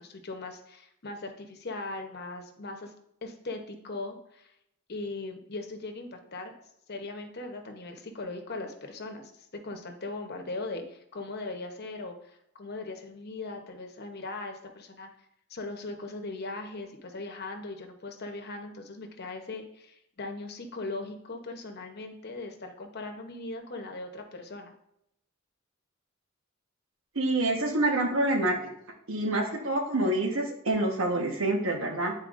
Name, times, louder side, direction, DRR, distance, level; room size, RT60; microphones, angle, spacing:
voice 1, 0.0-2.9 3.2-4.5 4.9-6.5 6.9-15.1 15.5-24.7, left 2 dB, 55° left, 4 dB, 0.9 m, -39 dB
voice 2, 27.1-28.6 29.1-32.1, right 2 dB, 80° right, 2 dB, 1.3 m, -27 dB
9.5 x 4.4 x 2.5 m, 0.78 s
head